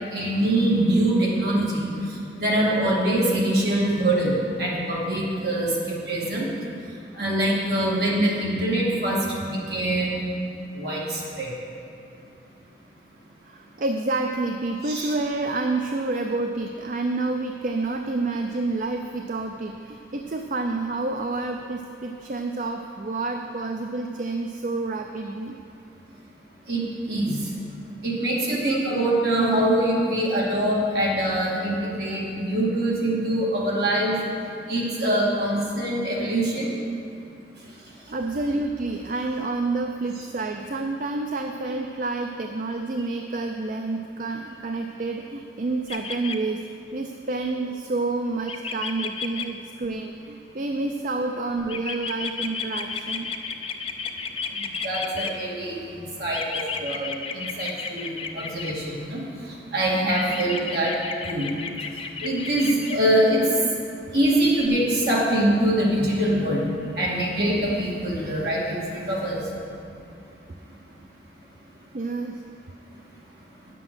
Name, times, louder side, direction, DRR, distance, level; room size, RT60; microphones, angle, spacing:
voice 1, 0.1-6.5 7.1-10.2 10.7-11.5 14.8-15.1 26.7-27.4 28.0-34.2 34.7-36.8 54.5-60.9 61.2-61.5 62.2-63.5 64.1-66.6 67.0-69.4, right 1 dB, 60° right, -5 dB, 2.4 m, -24 dB
voice 2, 13.4-25.6 38.1-46.6 46.9-53.3 71.9-72.4, right 3 dB, 45° right, 4 dB, 0.4 m, -29 dB
sound 1, 45.9-46.4 48.5-49.4 51.7-55.3 56.3-58.7 60.1-63.0 64.6-64.7, left 5 dB, 30° left, 0.5 m, -32 dB
9.5 x 7.6 x 6.1 m, 2.5 s
head